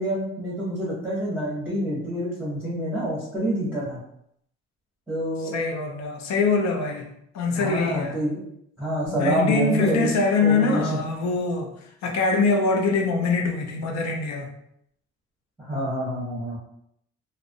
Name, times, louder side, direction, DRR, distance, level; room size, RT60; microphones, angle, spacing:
voice 1, 0.0-4.0 5.1-5.6 7.6-8.4 8.8-10.1 10.4-11.0 15.6-16.6, equal, 5° right, -9 dB, 0.7 m, -27 dB
voice 2, 5.5-8.2 9.1-11.7 12.0-14.5, left 3 dB, 65° left, 2 dB, 0.6 m, -24 dB
2.4 x 2.0 x 2.5 m, 0.74 s
cardioid pair, 90°, 30 cm